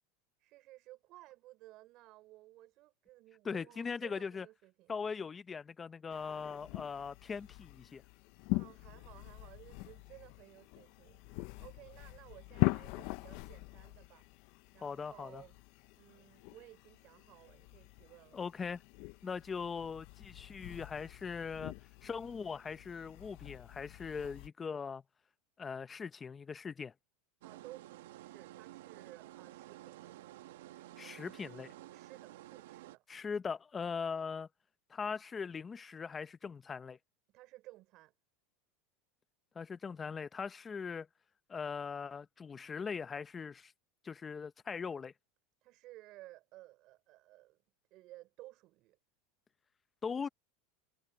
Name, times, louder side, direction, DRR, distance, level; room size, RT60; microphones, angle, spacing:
voice 1, 0.4-4.9 8.5-14.3 14.7-15.6 16.0-18.4 27.4-30.3 31.8-33.0 37.3-38.1 45.6-47.6 47.9-49.0, right 18 dB, 50° right, 4.7 m, -57 dB
voice 2, 3.4-4.5 4.9-8.0 14.8-15.4 18.3-18.8 19.2-21.7 22.0-25.0 25.6-26.9 31.0-31.7 33.1-34.5 34.9-37.0 39.5-41.1 41.5-43.7 44.0-45.1 50.0-50.3, left 5 dB, 20° left, 0.7 m, -40 dB
sound 1, 6.1-24.5, left 21 dB, 60° left, 0.9 m, -42 dB
sound 2, 27.4-33.0, right 15 dB, 85° right, 1.6 m, -52 dB
supercardioid pair, 135°, 0 cm